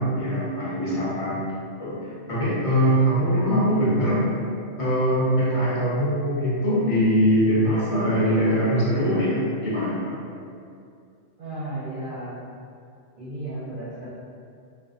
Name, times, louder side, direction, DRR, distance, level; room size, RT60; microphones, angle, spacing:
voice 1, 0.0-1.4 1.8-2.0 2.3-4.2 4.8-10.1, equal, 35° left, -9 dB, 0.7 m, -22 dB
voice 2, 11.4-12.5 13.2-14.1, right 1 dB, 50° right, -12 dB, 0.7 m, -34 dB
2.5 x 2.3 x 2.4 m, 2.4 s
omnidirectional pair, 1.3 m